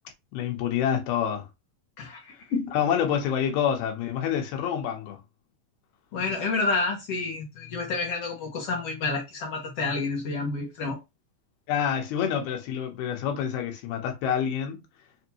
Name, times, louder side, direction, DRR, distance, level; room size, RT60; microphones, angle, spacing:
voice 1, 0.3-1.5 2.7-5.2 11.7-14.8, left 9 dB, 90° left, 3.0 m, -27 dB
voice 2, 2.0-2.7 6.1-11.0, left 3 dB, 60° left, 1.7 m, -29 dB
6.6 x 2.7 x 2.9 m
omnidirectional pair, 4.3 m